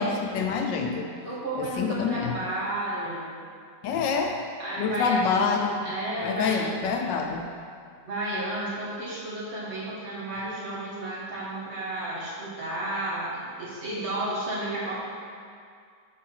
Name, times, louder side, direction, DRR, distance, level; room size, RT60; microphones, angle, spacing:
voice 1, 0.0-1.1 1.6-2.4 3.8-4.4 4.8-5.8 6.2-7.4, left 5 dB, 75° left, 3 dB, 1.2 m, -26 dB
voice 2, 1.2-3.3 4.6-5.4 5.8-6.8 8.0-14.9, right 1 dB, 35° right, -8 dB, 1.9 m, -32 dB
5.7 x 4.6 x 6.0 m, 2.2 s
omnidirectional pair, 2.0 m